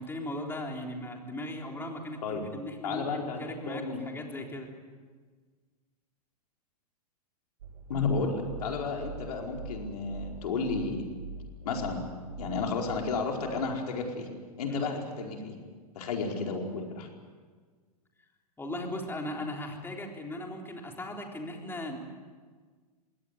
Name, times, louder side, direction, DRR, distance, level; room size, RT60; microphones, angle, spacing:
voice 1, 0.0-4.7 14.7-14.8 18.6-22.0, left 1 dB, 10° left, 2 dB, 3.8 m, -38 dB
voice 2, 2.8-3.4 3.7-4.0 7.9-11.1 11.6-12.0 12.4-14.3 14.6-15.5 15.9-17.1, left 4 dB, 75° left, 1 dB, 4.8 m, -32 dB
sound 1, 7.6-14.8, right 3 dB, 70° right, 2.0 m, -44 dB
22.0 x 17.5 x 9.6 m, 1.5 s
hypercardioid pair, 115°, 20 cm